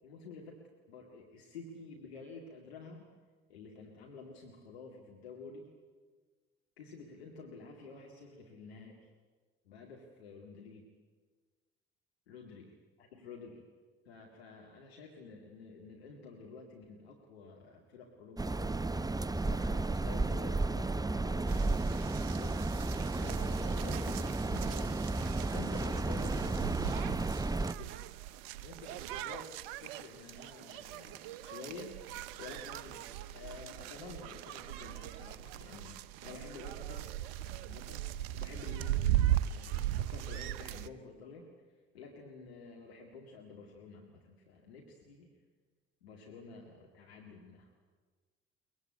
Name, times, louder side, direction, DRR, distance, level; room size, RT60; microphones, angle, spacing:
voice 1, 0.0-0.6 0.9-3.1 3.5-5.7 6.8-9.0 9.6-10.9 12.3-13.6 14.0-19.0 19.4-22.8 23.1-28.1 28.6-29.5 29.8-32.0 32.4-37.1 37.4-38.1 38.3-39.1 39.5-41.5 41.9-45.4 46.0-47.7, left 4 dB, 80° left, 0 dB, 2.3 m, -50 dB
sound 1, 18.4-27.7, right 2 dB, 10° right, 0.8 m, -33 dB
sound 2, 21.5-40.9, right 12 dB, 70° right, 0.8 m, -38 dB
23.0 x 21.0 x 8.6 m, 1.4 s
figure-of-eight pair, 50°, 31 cm